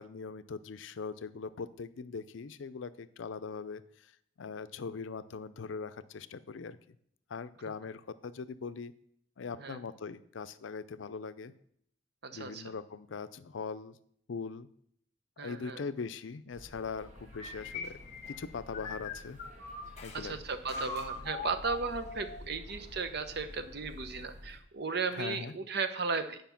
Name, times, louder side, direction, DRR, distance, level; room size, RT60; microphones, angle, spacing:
voice 1, 0.0-4.1 4.4-6.8 7.3-8.9 9.4-11.5 12.3-14.0 14.3-14.7 15.4-18.0 18.3-19.4 20.0-20.4 25.1-25.5, left 5 dB, 75° left, 13 dB, 0.5 m, -41 dB
voice 2, 12.2-12.7 15.4-15.8 20.1-26.4, right 4 dB, 55° right, 10 dB, 0.8 m, -35 dB
sound 1, 16.5-24.6, left 1 dB, 40° right, 1.6 m, -50 dB
sound 2, 17.3-20.2 20.7-22.5, left 3 dB, 35° left, 1.2 m, -42 dB
9.3 x 5.2 x 5.7 m, 0.68 s
head